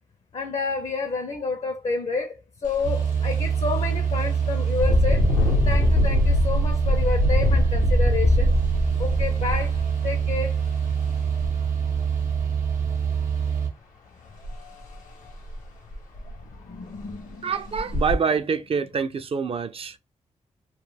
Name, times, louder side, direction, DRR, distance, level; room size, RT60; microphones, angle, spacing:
voice 1, 0.3-2.4 2.6-5.2 5.6-8.5 9.0-10.6 16.5-17.5, left 4 dB, 50° left, 0.5 m, -29 dB
Engine, 2.6-2.9 3.3-3.5 4.7-10.5 11.4-11.5 11.9-12.7 14.4-14.6 14.9-15.0 15.5-15.6 15.9-16.4 17.0-17.1 17.7-18.1, left 2 dB, 85° left, 0.7 m, -22 dB
sound 1, 2.8-13.7, right 7 dB, 85° right, 0.6 m, -25 dB
voice 2, 17.4-20.0, right 6 dB, 45° right, 0.4 m, -26 dB
2.3 x 2.2 x 3.2 m
cardioid pair, 45°, 13 cm